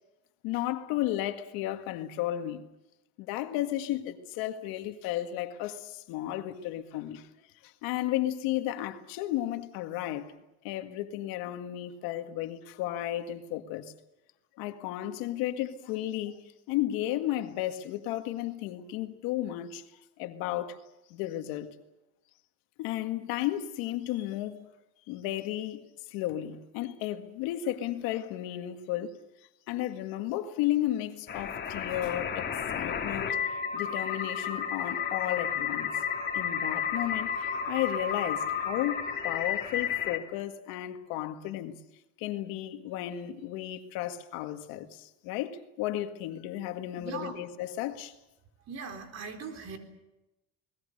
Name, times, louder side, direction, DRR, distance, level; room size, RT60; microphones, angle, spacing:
voice 1, 0.4-2.7 3.2-7.3 7.6-10.3 10.6-13.9 14.6-20.8 21.1-21.8 22.8-24.7 25.1-29.2 29.7-36.0 36.3-41.7 42.2-48.2, left 13 dB, 90° left, 1.9 m, -33 dB
sound 1, 31.3-40.2, left 7 dB, 30° left, 3.1 m, -32 dB
voice 2, 47.0-47.4 48.7-49.8, right 5 dB, 50° right, 4.1 m, -39 dB
29.0 x 20.0 x 6.6 m
cardioid pair, 135°, 34 cm